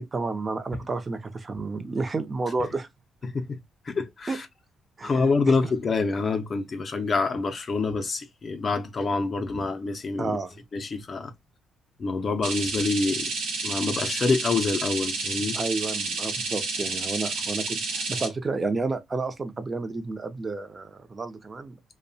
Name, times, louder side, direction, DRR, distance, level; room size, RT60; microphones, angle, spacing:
voice 1, 0.0-2.9 4.3-4.4 5.0-5.6 10.2-10.6 15.5-21.9, right 3 dB, 30° right, 0.5 m, -31 dB
voice 2, 3.2-3.6 3.9-4.5 5.0-10.3 10.7-11.3 12.0-13.3 13.6-15.6, left 4 dB, 40° left, 0.4 m, -26 dB
sound 1, 12.4-18.3, right 3 dB, 80° right, 0.9 m, -30 dB
2.6 x 2.1 x 2.6 m
cardioid pair, 90°, 0 cm